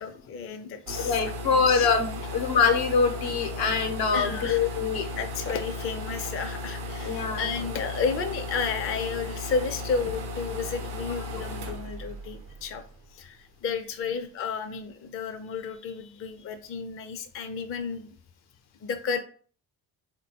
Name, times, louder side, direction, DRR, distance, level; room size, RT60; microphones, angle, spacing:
voice 1, 0.0-1.2 1.5-1.9 4.1-4.7 5.2-12.8 13.1-18.1 18.8-19.2, left 5 dB, 35° left, 6 dB, 0.5 m, -32 dB
sound 1, 0.9-13.3, left 1 dB, 80° right, 0.7 m, -36 dB
voice 2, 1.0-5.1 7.0-7.5 11.1-11.2, left 5 dB, 70° left, 5 dB, 0.7 m, -24 dB
3.6 x 2.2 x 2.7 m, 0.43 s
supercardioid pair, 70°, 39 cm